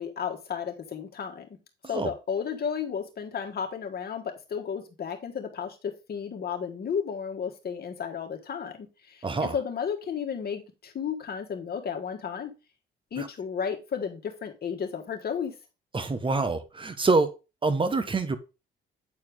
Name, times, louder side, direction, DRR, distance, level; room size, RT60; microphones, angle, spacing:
voice 1, 0.0-1.5 1.9-9.2 9.5-12.5 13.1-15.5, left 7 dB, 50° left, 1.7 m, -33 dB
voice 2, 9.2-9.5 13.2-13.3 15.9-17.3 17.6-18.4, right 3 dB, 25° right, 1.2 m, -26 dB
8.4 x 4.4 x 3.7 m
cardioid pair, 90°, 20 cm